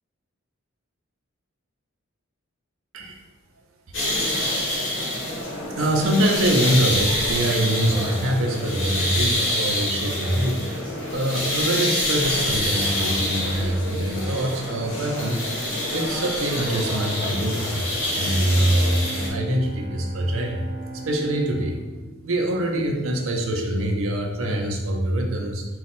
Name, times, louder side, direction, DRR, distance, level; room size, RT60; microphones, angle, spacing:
sound 1, 3.9-19.3, left 1 dB, 60° left, 1.1 m, -26 dB
voice 1, 5.8-10.6 11.1-15.6 15.9-17.8 18.1-20.6 21.1-21.8 22.2-25.6, right 1 dB, 80° right, 3 dB, 0.6 m, -24 dB
Bowed string instrument, 17.9-23.4, right 2 dB, 80° left, 1.0 m, -38 dB
4.1 x 2.3 x 4.2 m, 1.2 s
head